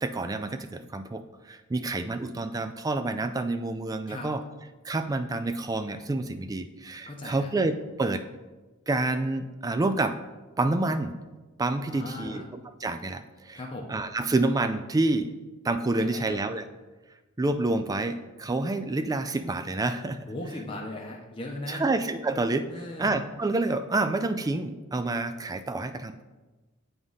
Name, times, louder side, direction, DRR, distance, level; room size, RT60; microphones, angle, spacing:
voice 1, 0.0-4.4 4.8-8.2 8.9-10.2 10.6-11.1 11.6-13.6 13.9-15.3 15.6-16.6 17.4-20.3 21.7-22.7 23.0-26.2, right 2 dB, 15° right, 9 dB, 0.3 m, -28 dB
voice 2, 7.1-7.5 11.9-12.5 13.6-13.9 15.9-16.5 20.3-21.9 22.7-23.1, left 1 dB, 25° left, -1 dB, 0.7 m, -38 dB
8.0 x 3.7 x 5.4 m, 1.2 s
head